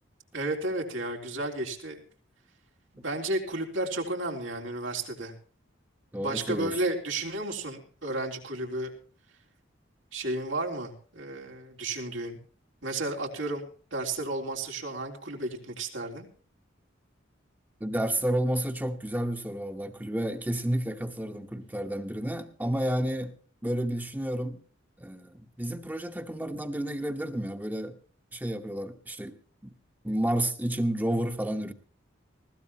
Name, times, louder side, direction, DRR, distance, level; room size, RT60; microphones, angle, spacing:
voice 1, 0.3-2.0 2.9-5.3 6.2-8.9 10.1-12.4 12.8-13.6 13.9-16.3, right 2 dB, 85° right, 3.7 m, -32 dB
voice 2, 6.1-6.7 17.8-23.3 23.6-24.6 25.0-28.0 28.3-29.4 29.6-29.7 30.0-31.7, right 1 dB, 10° right, 1.2 m, -31 dB
20.5 x 16.0 x 3.0 m
head